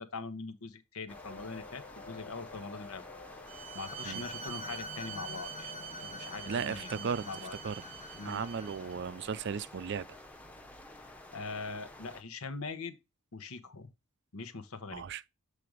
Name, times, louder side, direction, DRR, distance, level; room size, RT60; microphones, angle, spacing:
voice 1, 0.0-3.0 3.7-5.7 6.0-7.6 8.2-8.4 10.9-13.0 13.3-13.9 14.3-15.0, left 4 dB, 85° left, 1.1 m, -42 dB
sound 1, 1.1-9.6, left 4 dB, 35° left, 0.4 m, -51 dB
sound 2, 1.1-12.2, left 1 dB, 5° left, 0.7 m, -51 dB
Bowed string instrument, 3.5-9.0, right 4 dB, 25° right, 0.7 m, -44 dB
voice 2, 6.5-7.3 7.6-7.8 8.2-10.1 14.9-15.2, right 6 dB, 55° right, 0.4 m, -35 dB
7.7 x 3.4 x 5.1 m
head